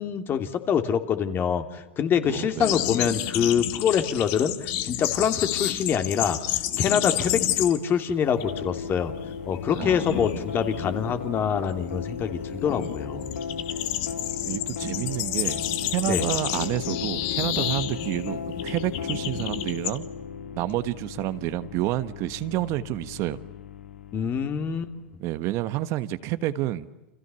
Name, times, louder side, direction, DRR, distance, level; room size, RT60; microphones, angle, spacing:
voice 1, 0.0-6.4 6.8-9.1 9.5-13.2 16.1-16.2 24.1-24.9, left 8 dB, 35° left, 8 dB, 2.9 m, -25 dB
voice 2, 2.2-2.7 9.7-10.4 14.5-15.6 15.9-20.0 20.6-23.4 25.2-26.9, right 15 dB, 50° right, 13 dB, 1.4 m, -29 dB
sound 1, 2.6-8.0 8.3-8.6 8.9-20.0, left 13 dB, 55° left, 2.5 m, -30 dB
sound 2, 8.4-25.1, left 6 dB, 85° left, 2.7 m, -36 dB
30.0 x 27.0 x 7.1 m, 1.1 s
hypercardioid pair, 105°, 7 cm